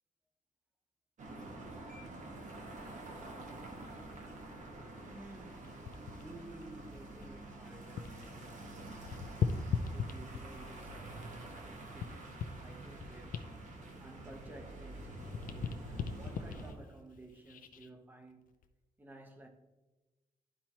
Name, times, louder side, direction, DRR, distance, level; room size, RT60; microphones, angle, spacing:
sound 1, 1.2-16.7, right 2 dB, 55° right, 1.3 m, -48 dB
voice 1, 5.1-9.6 9.9-12.3 12.5-18.4 19.0-19.5, right 2 dB, 10° right, 0.8 m, -54 dB
sound 2, 5.5-8.3 8.6-10.7 11.3-14.8 15.1-17.9 18.5-18.7, left 6 dB, 65° left, 0.5 m, -40 dB
12.0 x 4.5 x 2.9 m
wide cardioid pair, 170°, 15 cm